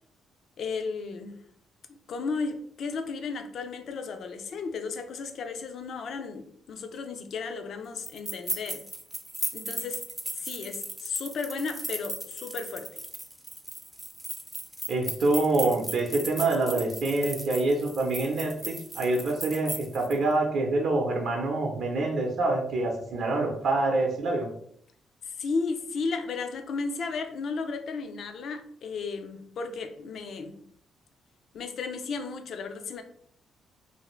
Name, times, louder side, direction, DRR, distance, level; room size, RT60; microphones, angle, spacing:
voice 1, 0.6-1.4 1.9-8.8 9.5-10.0 10.3-12.9 25.3-30.6 31.5-33.0, left 4 dB, 60° left, 0.4 m, -34 dB
sound 1, 8.0-20.2, right 1 dB, 10° right, 0.4 m, -37 dB
voice 2, 14.9-24.5, right 2 dB, 65° right, 0.6 m, -26 dB
2.6 x 2.5 x 3.0 m
cardioid pair, 90°, 0 cm